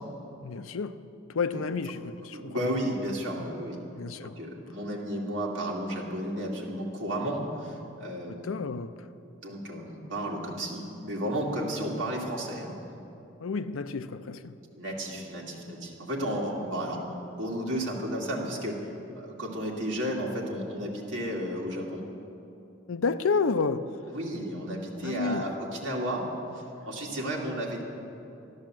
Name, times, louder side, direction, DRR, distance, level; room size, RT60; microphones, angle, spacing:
voice 1, 0.4-1.0 1.3-2.7 4.0-4.4 8.3-9.1 13.4-14.6 22.9-23.9 25.0-25.5, left 4 dB, 85° left, 12 dB, 0.5 m, -30 dB
voice 2, 2.3-3.8 4.2-8.6 9.4-12.7 14.8-17.0 17.4-18.8 19.1-22.0 24.1-26.2 26.9-27.8, equal, 65° right, -3 dB, 2.4 m, -33 dB
13.0 x 10.5 x 7.5 m, 2.8 s
head